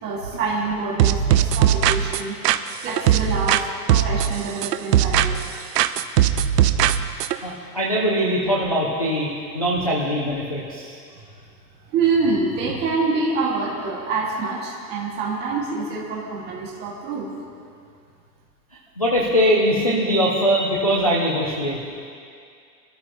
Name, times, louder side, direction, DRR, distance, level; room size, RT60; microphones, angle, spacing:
voice 1, 0.0-2.3 2.8-5.4 11.1-11.2 11.9-17.3, right 4 dB, 20° right, -4 dB, 1.9 m, -26 dB
sound 1, 1.0-3.6 3.9-5.5 5.8-7.4, right 10 dB, 75° right, 0.7 m, -19 dB
voice 2, 7.4-9.3 9.5-10.9 19.0-21.8, equal, 25° left, -5 dB, 0.3 m, -21 dB
23.0 x 13.0 x 2.9 m, 2.3 s
supercardioid pair, 175°, 50 cm